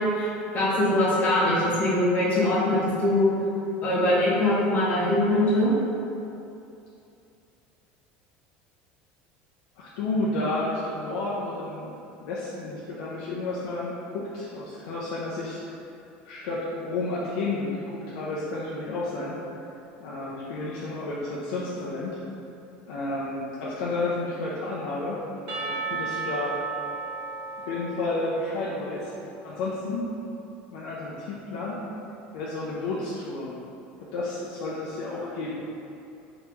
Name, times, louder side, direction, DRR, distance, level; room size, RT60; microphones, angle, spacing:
voice 1, 0.0-3.3 3.8-5.7, left 1 dB, 35° left, -7 dB, 0.8 m, -22 dB
voice 2, 9.8-11.9 12.2-15.6 16.2-19.4 20.0-22.2 22.9-26.5 27.7-29.1 29.4-30.1 30.7-31.8 32.3-33.5 34.1-35.6, left 2 dB, 85° left, -7 dB, 0.5 m, -31 dB
Percussion / Church bell, 25.5-29.5, right 4 dB, 60° right, 0.6 m, -35 dB
3.4 x 2.9 x 2.9 m, 2.7 s
cardioid pair, 145°, 4 cm